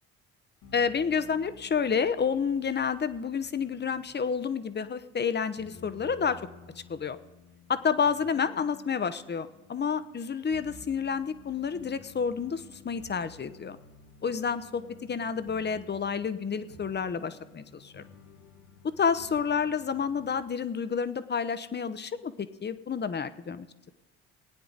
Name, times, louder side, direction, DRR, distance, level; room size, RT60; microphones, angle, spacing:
sound 1, 0.6-20.4, left 5 dB, 75° left, 1.6 m, -53 dB
voice 1, 0.7-6.4 6.9-7.2 7.7-13.8 14.2-18.0 18.8-23.9, left 6 dB, 30° left, 13 dB, 0.9 m, -29 dB
19.5 x 9.3 x 4.0 m, 1.1 s
hypercardioid pair, 60°, 34 cm